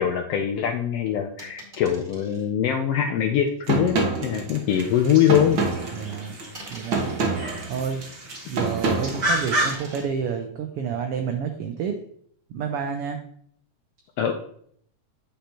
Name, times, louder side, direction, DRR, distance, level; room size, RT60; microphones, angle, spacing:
voice 1, 0.0-5.6 14.2-14.3, left 9 dB, 80° left, 5 dB, 1.4 m, -23 dB
sound 1, 1.4-2.5 3.5-3.6 5.1-6.2 6.5-7.4 8.4-9.1 9.5-10.1, right 1 dB, 20° right, 2.2 m, -44 dB
sound 2, 3.7-10.0, right 3 dB, 60° right, 1.3 m, -27 dB
sound 3, 4.7-9.8, right 1 dB, 40° right, 2.0 m, -31 dB
voice 2, 5.9-6.3 6.7-7.1 7.7-8.0 8.5-12.0 12.5-13.2, right 6 dB, 85° right, 5 dB, 1.2 m, -29 dB
8.4 x 5.7 x 2.9 m, 0.64 s
omnidirectional pair, 3.3 m